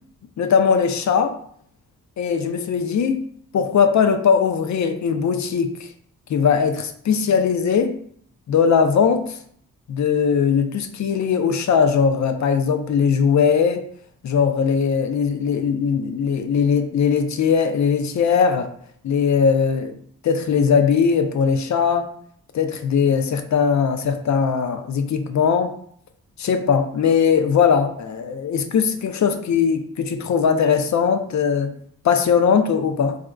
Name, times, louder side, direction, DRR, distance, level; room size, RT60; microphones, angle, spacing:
voice 1, 0.4-1.4 2.2-3.2 3.5-5.9 6.3-8.0 8.5-9.4 9.9-13.8 14.2-18.7 19.0-20.0 20.2-22.1 22.5-25.7 26.4-31.8 32.0-33.2, left 6 dB, 50° left, 7 dB, 0.5 m, -19 dB
3.4 x 2.4 x 2.2 m, 0.63 s
supercardioid pair, 40°, 39 cm